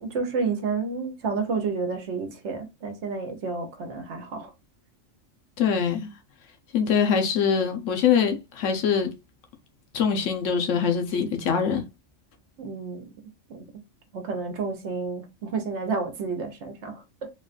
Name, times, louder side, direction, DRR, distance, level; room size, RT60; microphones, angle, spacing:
voice 1, 0.0-4.5 12.6-13.1 13.5-13.7 14.1-17.3, right 4 dB, 70° right, 1.1 m, -30 dB
voice 2, 5.6-6.1 6.7-9.1 9.9-11.8, left 7 dB, 80° left, 1.1 m, -23 dB
3.8 x 2.3 x 2.4 m
omnidirectional pair, 1.3 m